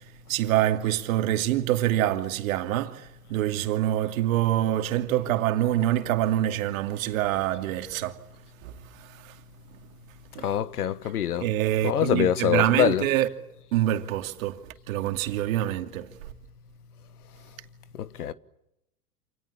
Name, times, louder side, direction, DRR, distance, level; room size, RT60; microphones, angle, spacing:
voice 1, 0.3-8.2 8.6-8.7 9.0-9.3 10.3-10.5 11.4-13.3 13.7-14.6 14.9-16.1, right 13 dB, 60° right, 2.7 m, -25 dB
voice 2, 10.4-11.4 11.8-13.0 18.2-18.3, left 10 dB, 75° left, 1.5 m, -24 dB
28.5 x 28.5 x 7.3 m
hypercardioid pair, 95°, 46 cm